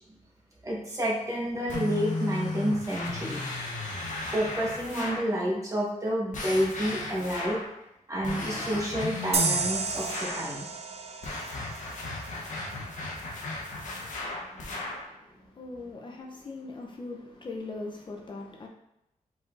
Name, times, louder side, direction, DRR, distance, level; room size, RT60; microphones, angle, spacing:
voice 1, 0.6-3.7 4.3-7.6 8.1-10.6 13.9-14.1 14.5-14.8, equal, 25° right, 1.2 m, -30 dB
sound 1, 1.7-5.3 6.3-7.7 8.2-10.5 11.2-15.1, left 2 dB, 75° left, 0.8 m, -35 dB
sound 2, 9.3-12.7, right 4 dB, 50° right, 0.5 m, -32 dB
voice 2, 14.5-18.7, left 3 dB, 40° left, 0.5 m, -41 dB
4.9 x 3.9 x 2.5 m
wide cardioid pair, 135°, 13 cm